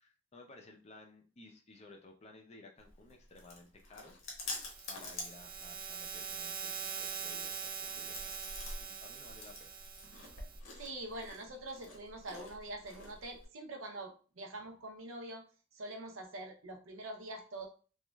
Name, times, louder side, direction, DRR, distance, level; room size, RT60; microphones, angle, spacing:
voice 1, 0.0-4.2 4.9-8.3 8.8-9.8, left 2 dB, 30° left, 2 dB, 0.4 m, -56 dB
Chewing mastication, 2.8-13.5, left 2 dB, 80° left, 0.8 m, -48 dB
sound 1, 4.4-10.6, right 6 dB, 45° right, 0.4 m, -43 dB
voice 2, 10.8-15.4 15.7-17.7, right 1 dB, 85° right, 3 dB, 0.6 m, -44 dB
2.9 x 2.3 x 2.2 m, 0.37 s
head